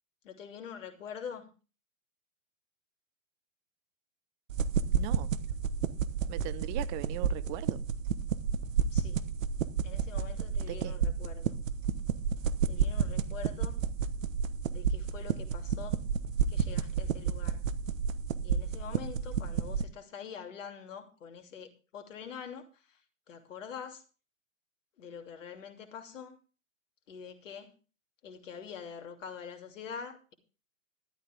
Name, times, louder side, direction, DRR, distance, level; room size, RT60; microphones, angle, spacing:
voice 1, 0.2-1.4 8.9-9.2 9.8-11.6 12.7-13.8 14.7-16.0 16.5-17.6 18.4-22.7 23.3-24.0 25.0-26.4 27.1-27.7 28.2-30.3, left 7 dB, 65° left, 2.9 m, -45 dB
sound 1, 4.5-19.9, right 6 dB, 70° right, 1.2 m, -31 dB
voice 2, 4.9-5.3 6.3-7.8 10.6-11.0, right 16 dB, 35° right, 0.8 m, -39 dB
13.0 x 12.5 x 3.5 m
figure-of-eight pair, 110°, 41 cm